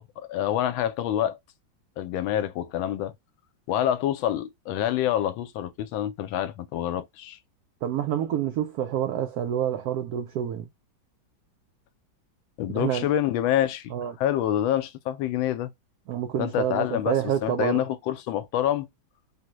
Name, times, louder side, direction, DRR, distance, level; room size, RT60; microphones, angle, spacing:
voice 1, 0.0-1.4 2.0-3.1 3.7-7.4 12.6-15.7 16.4-17.1 17.4-18.9, left 11 dB, 85° left, 1.3 m, -27 dB
voice 2, 7.8-10.7 12.7-13.1 13.9-14.2 16.1-17.8, right 10 dB, 80° right, 0.8 m, -28 dB
3.7 x 2.1 x 2.9 m
omnidirectional pair, 2.1 m